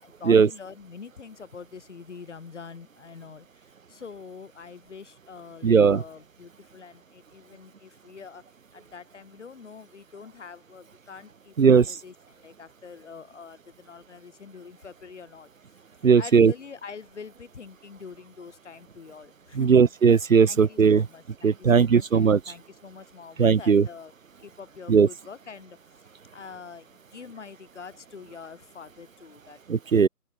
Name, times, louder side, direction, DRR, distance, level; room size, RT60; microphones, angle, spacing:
voice 1, 0.0-8.4 8.7-15.5 16.2-19.9 20.4-24.1 24.4-25.8 26.3-29.6, left 5 dB, 50° left, 4.6 m, -45 dB
voice 2, 5.6-6.0 11.6-11.8 16.0-16.5 19.6-21.0 21.4-22.4 23.4-23.8 24.9-25.1 29.7-30.1, right 6 dB, 60° right, 1.0 m, -18 dB
open air
figure-of-eight pair, 155°, 45 cm